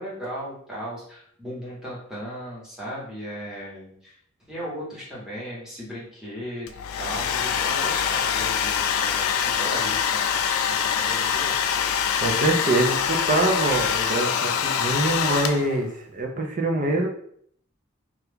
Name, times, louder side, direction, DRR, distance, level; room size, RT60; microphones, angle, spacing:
voice 1, 0.0-4.2 4.5-6.7 7.0-11.5, equal, ahead, -8 dB, 1.0 m, -36 dB
Domestic sounds home sounds, 6.7-15.9, left 8 dB, 75° left, 0.3 m, -24 dB
voice 2, 12.2-17.1, right 2 dB, 35° right, 2 dB, 0.5 m, -24 dB
2.8 x 2.4 x 3.4 m, 0.65 s
head